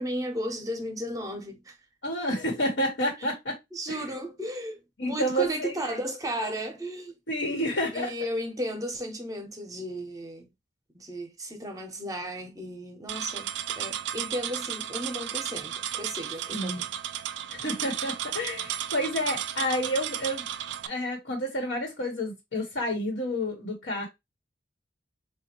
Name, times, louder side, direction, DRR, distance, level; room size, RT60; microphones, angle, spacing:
voice 1, 0.0-1.8 3.7-7.2 7.9-10.5 10.9-13.5 13.7-16.9, equal, 20° right, 0.7 m, -34 dB
voice 2, 2.0-3.6 3.9-4.1 5.0-5.9 7.3-8.1 16.5-16.8 17.5-20.4 20.8-24.1, equal, 85° left, 1.2 m, -30 dB
sound 1, 13.1-20.9, right 11 dB, 70° right, 0.3 m, -34 dB
4.2 x 2.3 x 2.9 m
head